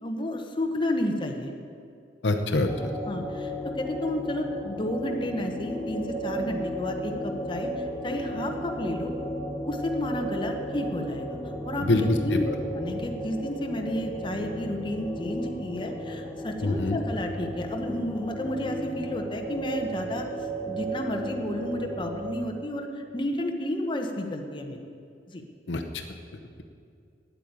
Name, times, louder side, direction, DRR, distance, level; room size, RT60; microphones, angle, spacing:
voice 1, 0.0-1.5 3.1-9.1 9.6-12.5 12.7-20.3 20.6-24.8 25.3-25.4, left 1 dB, 25° left, 3 dB, 1.0 m, -31 dB
voice 2, 2.2-2.7 11.9-12.6 16.6-17.0 25.7-25.8, left 2 dB, 75° left, 5 dB, 0.9 m, -24 dB
sound 1, 2.7-22.3, equal, 5° left, 2.3 m, -34 dB
9.2 x 8.5 x 9.5 m, 2.4 s
head